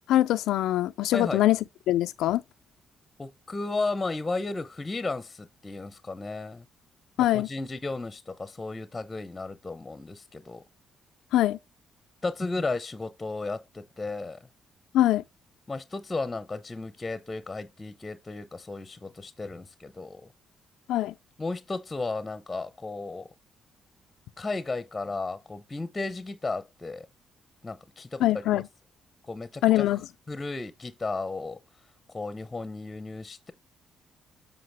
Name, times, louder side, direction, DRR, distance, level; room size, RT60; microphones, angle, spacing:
voice 1, 0.1-1.6 1.9-2.4 7.2-7.5 11.3-11.6 14.9-15.2 20.9-21.1 28.2-28.7 29.6-30.0, left 14 dB, 85° left, 0.3 m, -23 dB
voice 2, 3.2-6.6 7.2-10.6 12.2-14.4 15.7-20.3 21.4-23.3 24.4-27.1 27.6-28.3 28.5-28.6 29.2-30.0 30.3-31.6 32.1-33.5, left 3 dB, 20° left, 0.7 m, -34 dB
7.8 x 5.3 x 3.4 m
cardioid pair, 90°, 0 cm